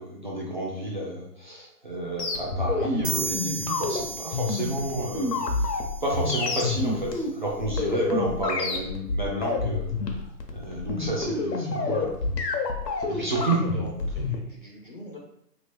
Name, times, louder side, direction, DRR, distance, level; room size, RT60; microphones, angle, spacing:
voice 1, 0.0-5.4 6.0-9.9 10.5-12.1 13.1-13.6, right 1 dB, 30° right, -4 dB, 0.4 m, -30 dB
sound 1, 2.2-14.4, left 3 dB, 75° left, 0.8 m, -28 dB
sound 2, 3.0-6.6, right 4 dB, 70° right, 0.7 m, -35 dB
voice 2, 13.0-15.2, left 1 dB, 35° left, -3 dB, 0.4 m, -43 dB
2.9 x 2.7 x 3.2 m, 0.73 s
hypercardioid pair, 150°, 49 cm